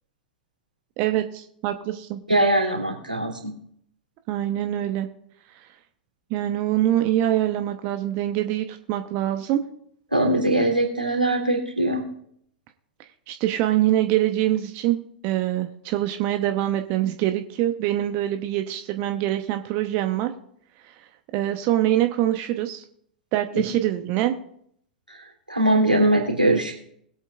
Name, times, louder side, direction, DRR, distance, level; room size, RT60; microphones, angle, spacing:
voice 1, 1.0-2.2 4.3-5.1 5.6-5.7 6.3-9.6 13.3-20.3 20.8-20.9 21.3-22.8 23.3-24.3, right 13 dB, 40° right, 7 dB, 1.0 m, -24 dB
voice 2, 2.3-3.5 10.1-12.0 25.5-26.7, right 1 dB, 90° right, -1 dB, 3.0 m, -21 dB
21.0 x 8.5 x 2.5 m, 0.67 s
figure-of-eight pair, 95°, 5 cm